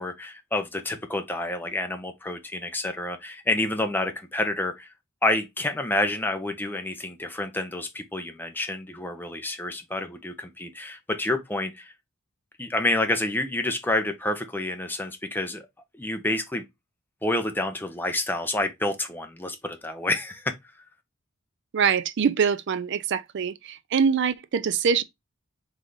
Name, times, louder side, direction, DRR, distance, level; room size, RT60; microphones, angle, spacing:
voice 1, 0.0-4.9 5.2-11.9 12.6-15.6 16.0-16.6 17.2-20.5, left 2 dB, 10° left, 0.6 m, -28 dB
voice 2, 21.7-25.0, right 6 dB, 55° right, 0.4 m, -24 dB
3.6 x 3.3 x 3.9 m
head